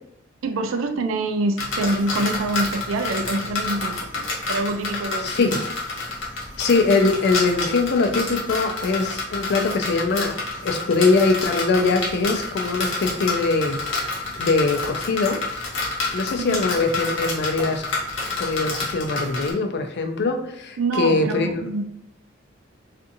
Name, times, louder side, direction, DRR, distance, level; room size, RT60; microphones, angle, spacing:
voice 1, 0.4-5.5 16.4-16.7 20.8-21.8, right 2 dB, 85° right, 7 dB, 0.4 m, -26 dB
sound 1, 1.6-19.5, left 3 dB, 75° left, 0.8 m, -29 dB
voice 2, 5.2-5.6 6.6-10.4 10.6-15.4 16.1-17.8 18.4-21.6, left 3 dB, 60° left, 4 dB, 0.4 m, -22 dB
2.6 x 2.5 x 2.5 m, 0.79 s
head